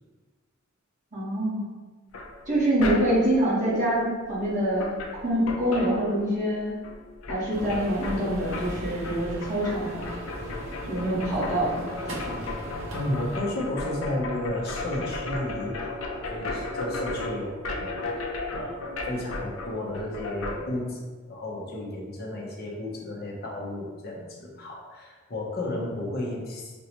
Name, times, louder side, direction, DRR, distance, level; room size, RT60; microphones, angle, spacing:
voice 1, 1.1-1.7 2.5-6.8 7.3-10.0 10.9-12.4, right 1 dB, 40° right, -8 dB, 1.5 m, -26 dB
sound 1, 2.1-3.4 4.4-4.5 4.7-6.6 6.8-20.6, left 2 dB, 85° left, 0.6 m, -35 dB
sound 2, 7.5-13.4, right 1 dB, 75° right, 0.8 m, -38 dB
voice 2, 12.9-18.0 18.5-18.8 19.0-21.0 21.3-26.7, left 1 dB, 50° left, -2 dB, 0.8 m, -33 dB
5.1 x 2.3 x 2.9 m, 1.3 s
head